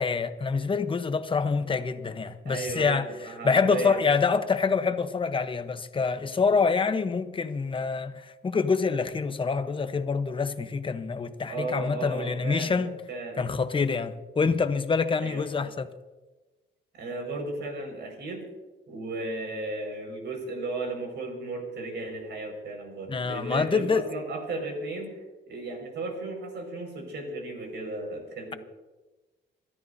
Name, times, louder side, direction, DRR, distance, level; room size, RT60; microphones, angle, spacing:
voice 1, 0.0-3.1 3.4-12.9 13.4-15.9 23.1-24.0, left 5 dB, 25° left, 1.0 m, -26 dB
voice 2, 2.5-4.0 11.5-13.5 15.2-15.7 16.9-18.4 18.9-25.2 25.5-28.6, right 2 dB, 65° right, 5.4 m, -35 dB
27.5 x 13.5 x 2.7 m
cardioid pair, 115°, 19 cm